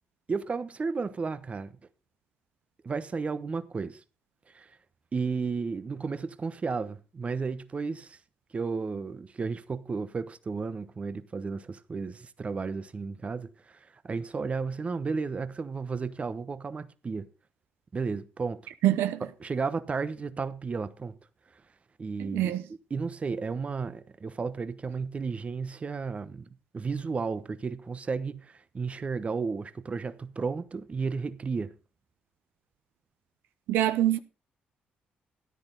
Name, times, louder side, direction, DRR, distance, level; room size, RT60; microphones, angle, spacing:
voice 1, 0.3-1.8 2.8-4.0 4.5-4.7 5.1-8.2 8.5-13.8 14.0-17.3 17.9-18.6 19.2-21.2 22.0-26.4 26.7-31.7, right 4 dB, 35° right, 0.9 m, -33 dB
voice 2, 18.8-19.2 22.2-22.6 33.7-34.2, right 13 dB, 85° right, 0.8 m, -25 dB
13.0 x 9.9 x 3.9 m
cardioid pair, 80°, 4 cm